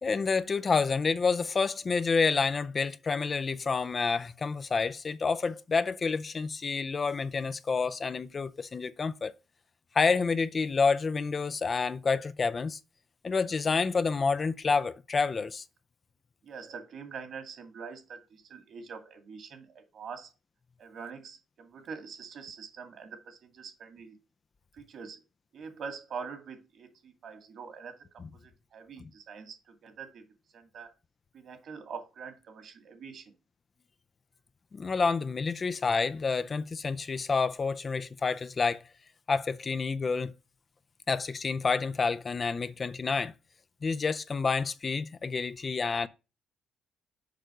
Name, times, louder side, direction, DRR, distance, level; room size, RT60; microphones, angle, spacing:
voice 1, 0.0-9.3 9.9-12.8 13.2-15.6 28.2-28.3 29.0-29.1 34.7-38.8 39.3-40.3 41.1-43.3 43.8-46.1, left 4 dB, 35° left, 0.5 m, -28 dB
voice 2, 16.4-20.3 20.8-24.2 24.8-25.2 25.5-27.9 28.4-29.5 29.8-30.2 30.5-30.9 31.3-33.2, right 6 dB, 65° right, 2.3 m, -44 dB
6.7 x 5.2 x 5.0 m
cardioid pair, 90°, 0 cm